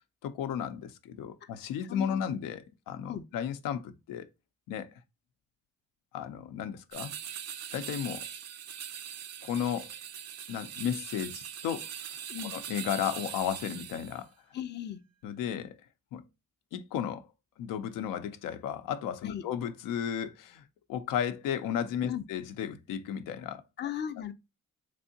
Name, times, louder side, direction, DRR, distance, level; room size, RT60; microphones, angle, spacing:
voice 1, 0.2-4.3 4.7-4.9 6.1-7.1 7.7-8.3 9.4-9.9 10.5-12.2 12.4-14.3 15.2-15.8 16.1-16.2 16.7-17.3 17.6-20.6 20.9-23.6, left 9 dB, 85° left, 0.6 m, -34 dB
voice 2, 1.9-2.3 3.0-3.2 12.3-12.5 14.5-15.0 19.2-19.4 22.1-22.2 23.8-24.3, left 10 dB, 35° left, 0.5 m, -36 dB
sound 1, 6.9-14.2, right 9 dB, 50° right, 0.5 m, -41 dB
3.5 x 3.3 x 2.7 m
cardioid pair, 90°, 32 cm